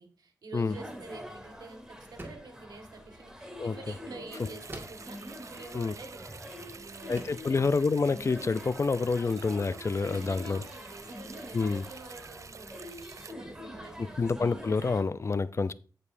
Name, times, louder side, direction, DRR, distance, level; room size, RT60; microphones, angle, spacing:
voice 1, 0.0-7.2 7.5-7.7 10.0-14.5, right 3 dB, 85° right, 1.6 m, -48 dB
sound 1, 0.7-15.0, equal, 10° right, 1.8 m, -45 dB
sound 2, 2.2-2.6 4.7-5.1 6.5-6.6 7.2-7.5, right 1 dB, 30° right, 1.8 m, -44 dB
sound 3, 4.3-13.3, right 5 dB, 50° right, 0.3 m, -49 dB
voice 2, 7.1-10.6 11.5-11.8 14.0-15.7, left 4 dB, 45° left, 0.4 m, -28 dB
14.0 x 5.4 x 2.6 m
cardioid pair, 60°, 7 cm